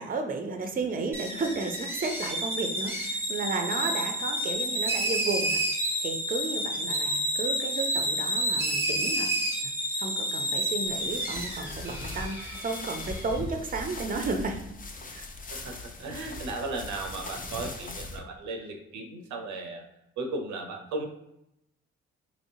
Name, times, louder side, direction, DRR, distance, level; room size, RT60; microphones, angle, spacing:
voice 1, 0.0-5.6 6.0-9.3 9.6-9.7 10.0-14.7 15.1-15.3, right 3 dB, 30° right, 5 dB, 0.6 m, -33 dB
sound 1, 1.1-13.4, equal, 5° right, 0.9 m, -30 dB
sound 2, 10.9-18.2, left 2 dB, 30° left, 0.5 m, -40 dB
voice 2, 15.5-19.8 20.2-21.1, right 3 dB, 70° right, 4 dB, 0.6 m, -36 dB
3.0 x 2.8 x 2.7 m, 0.81 s
hypercardioid pair, 45°, 30 cm